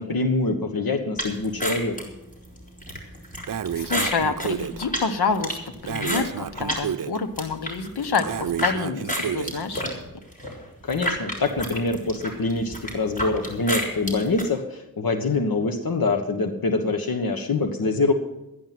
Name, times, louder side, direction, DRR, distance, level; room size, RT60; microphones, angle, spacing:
voice 1, 0.0-2.0 10.8-18.1, left 3 dB, 65° left, 6 dB, 1.4 m, -25 dB
sound 1, 1.2-6.8 7.2-8.7 9.1-14.5, equal, 20° left, 4.8 m, -30 dB
Breathing, 3.5-4.8 5.9-7.2 8.3-9.6, right 8 dB, 55° right, 0.7 m, -30 dB
voice 2, 3.7-5.6 5.8-9.9, left 5 dB, 90° left, 8 dB, 1.3 m, -27 dB
13.0 x 11.0 x 6.0 m, 0.97 s
cardioid pair, 65°, 38 cm